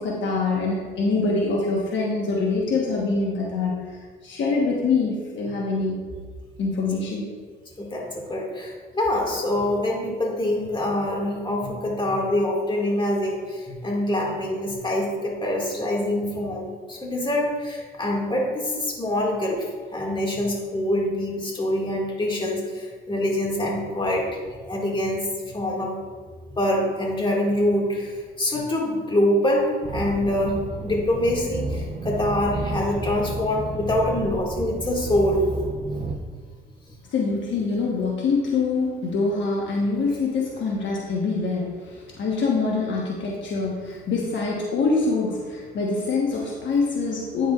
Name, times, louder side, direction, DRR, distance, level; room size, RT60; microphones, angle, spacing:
voice 1, 0.0-3.8 4.2-6.0 6.6-7.3 37.1-47.5, left 4 dB, 70° left, -3 dB, 1.2 m, -24 dB
voice 2, 7.8-19.7 19.9-24.3 24.7-25.2 25.5-25.9 26.6-35.4 36.2-36.3, left 1 dB, 25° left, -1 dB, 2.0 m, -25 dB
sound 1, 29.8-36.2, right 2 dB, 35° right, 0.7 m, -32 dB
9.3 x 7.1 x 2.4 m, 1.5 s
cardioid pair, 90°, 20 cm